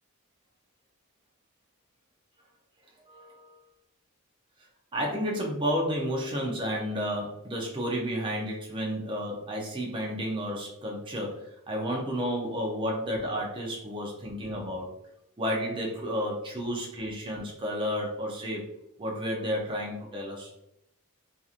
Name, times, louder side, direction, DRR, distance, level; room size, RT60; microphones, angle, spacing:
voice 1, 3.1-3.6 4.9-14.9 15.4-18.7 19.0-20.5, equal, 20° right, -1 dB, 0.5 m, -31 dB
2.8 x 2.5 x 2.4 m, 0.82 s
head